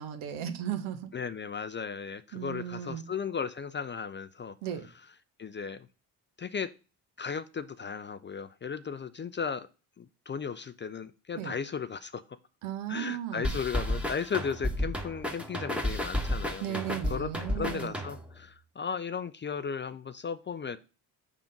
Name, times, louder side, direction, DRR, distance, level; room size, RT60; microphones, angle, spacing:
voice 1, 0.0-1.1 2.3-3.1 4.6-4.9 11.4-11.6 12.6-13.6 16.6-17.9, right 10 dB, 75° right, 9 dB, 0.9 m, -36 dB
voice 2, 1.1-4.6 5.4-5.9 6.4-6.7 7.2-9.7 10.0-12.4 12.9-20.8, left 6 dB, 25° left, 14 dB, 0.4 m, -36 dB
sound 1, 13.4-18.4, left 1 dB, ahead, 1.2 m, -32 dB
5.8 x 3.6 x 5.1 m, 0.33 s
hypercardioid pair, 50°, 48 cm